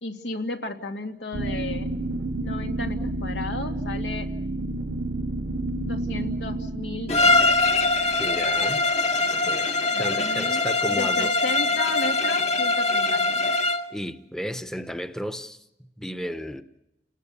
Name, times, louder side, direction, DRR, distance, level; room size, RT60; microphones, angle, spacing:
voice 1, 0.0-1.9 2.4-4.3 5.8-7.6 9.9-10.6 10.9-13.4, left 2 dB, 85° left, 2.5 m, -34 dB
sound 1, 1.3-9.3, right 2 dB, 60° right, 0.8 m, -31 dB
Bowed string instrument, 7.1-13.9, left 3 dB, 40° left, 1.2 m, -22 dB
voice 2, 8.2-8.9 9.4-9.7 10.0-11.3 13.9-15.6 16.0-16.6, equal, 5° left, 0.9 m, -33 dB
29.5 x 19.5 x 6.9 m
head